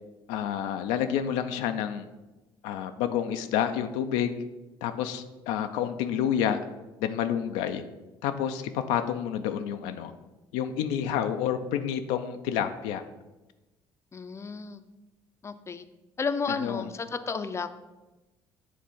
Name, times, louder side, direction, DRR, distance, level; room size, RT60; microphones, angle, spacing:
voice 1, 0.3-2.1 2.6-4.4 4.8-6.6 7.0-7.8 8.2-10.1 10.5-13.0 16.6-16.8, left 9 dB, 85° left, 8 dB, 0.4 m, -29 dB
voice 2, 14.1-14.8 15.4-15.8 16.2-17.7, left 5 dB, 25° left, 10 dB, 0.5 m, -32 dB
7.7 x 3.3 x 5.5 m, 1.1 s
supercardioid pair, 70°, 11 cm